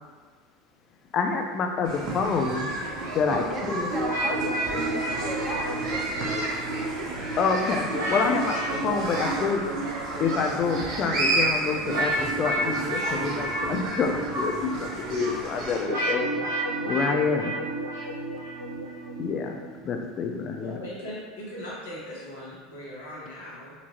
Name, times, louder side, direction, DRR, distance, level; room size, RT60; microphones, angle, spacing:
voice 1, 1.1-2.7 3.1-3.9 7.4-9.6 10.2-16.5 16.8-17.6 19.2-19.6 19.8-20.8, left 5 dB, 45° left, 3 dB, 0.5 m, -27 dB
sound 1, 1.8-15.8, right 2 dB, 50° right, 1.1 m, -32 dB
voice 2, 3.3-7.4, right 2 dB, 30° right, 0 dB, 0.7 m, -37 dB
sound 2, 3.9-19.8, right 1 dB, 70° right, 1.4 m, -31 dB
voice 3, 20.6-23.7, equal, 80° left, -7 dB, 1.4 m, -39 dB
4.3 x 2.8 x 2.8 m, 1.5 s
hypercardioid pair, 80°, 0 cm